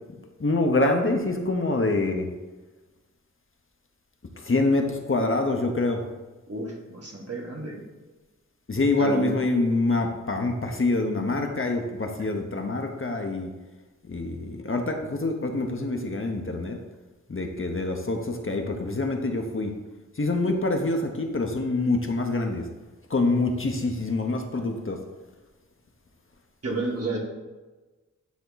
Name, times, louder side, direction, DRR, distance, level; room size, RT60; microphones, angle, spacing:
voice 1, 0.4-2.3 4.4-6.0 8.7-13.5 14.0-16.8 17.3-19.7 20.2-22.7 23.1-25.0, left 2 dB, 45° left, 3 dB, 0.8 m, -25 dB
voice 2, 6.5-7.8 9.0-9.4 12.2-12.3 26.6-27.2, right 2 dB, 55° right, -1 dB, 1.5 m, -31 dB
9.4 x 3.5 x 4.0 m, 1.2 s
wide cardioid pair, 80°, 29 cm